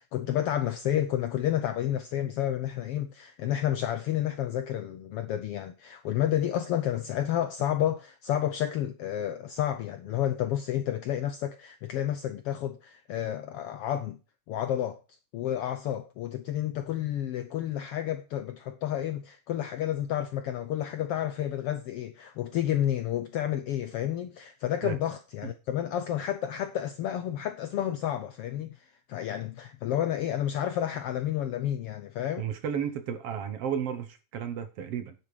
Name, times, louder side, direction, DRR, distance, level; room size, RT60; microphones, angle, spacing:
voice 1, 0.0-14.2 14.5-15.0 15.3-32.5, left 11 dB, 75° left, 1.3 m, -30 dB
voice 2, 32.4-35.2, right 8 dB, 65° right, 1.8 m, -33 dB
9.7 x 7.5 x 4.9 m
omnidirectional pair, 3.4 m